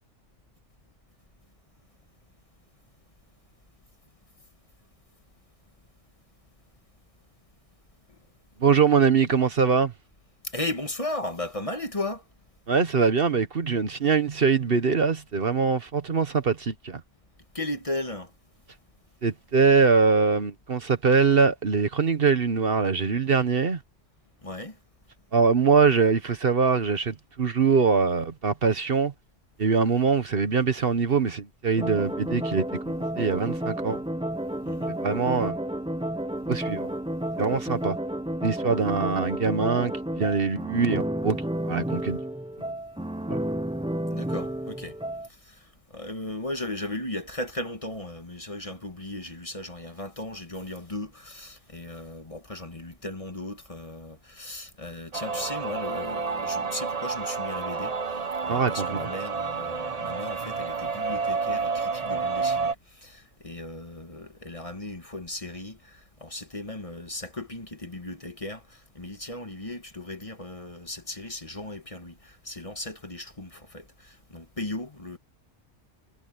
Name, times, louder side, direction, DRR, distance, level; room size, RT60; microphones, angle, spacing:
voice 1, 8.6-9.9 12.7-17.0 19.2-23.8 25.3-29.1 29.6-34.0 34.9-35.6 36.5-36.9 37.4-38.0 38.4-41.4 41.6-42.2 43.3-43.4 58.5-59.1, right 5 dB, 50° right, 1.2 m, -23 dB
voice 2, 10.4-12.2 17.5-18.3 24.4-24.8 34.7-34.9 44.1-45.0 45.4-75.2, left 2 dB, 30° left, 1.6 m, -36 dB
sound 1, 31.8-45.3, right 1 dB, 5° right, 0.7 m, -31 dB
sound 2, 55.1-62.7, right 5 dB, 35° right, 0.8 m, -30 dB
omnidirectional pair, 1.2 m